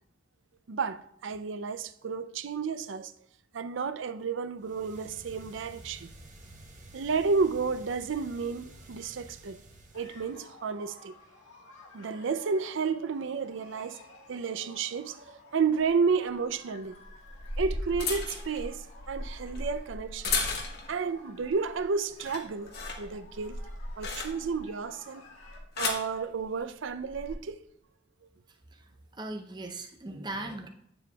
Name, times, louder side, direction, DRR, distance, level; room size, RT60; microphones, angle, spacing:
voice 1, 0.7-3.1 3.5-6.1 6.9-9.6 9.9-11.1 11.9-14.0 14.3-17.0 17.6-20.5 20.9-23.6 24.0-25.3 25.8-27.6, right 5 dB, 70° right, 0.5 m, -31 dB
sound 1, 4.6-10.5, right 1 dB, 40° right, 1.0 m, -51 dB
sound 2, 9.9-25.6, left 3 dB, 85° left, 1.5 m, -55 dB
sound 3, 15.8-15.9 17.1-21.0 21.5-21.8 22.1-24.7 25.4-26.1 27.0-27.3, left 3 dB, 50° left, 1.2 m, -35 dB
voice 2, 28.5-30.7, right 2 dB, 20° right, 0.6 m, -39 dB
8.4 x 7.0 x 2.3 m
head